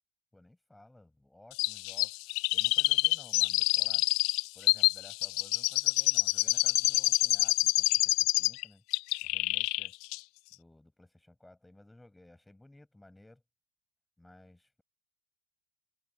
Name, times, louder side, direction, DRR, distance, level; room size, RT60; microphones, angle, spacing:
voice 1, 0.3-4.1 4.5-8.8 9.2-10.0 10.5-13.4 14.2-14.8, left 1 dB, 5° left, 7.0 m, -57 dB
Chirp tweet, 1.6-8.6 8.9-9.9 10.1-10.2, left 24 dB, 60° left, 0.4 m, -27 dB
open air
supercardioid pair, 145°, 0 cm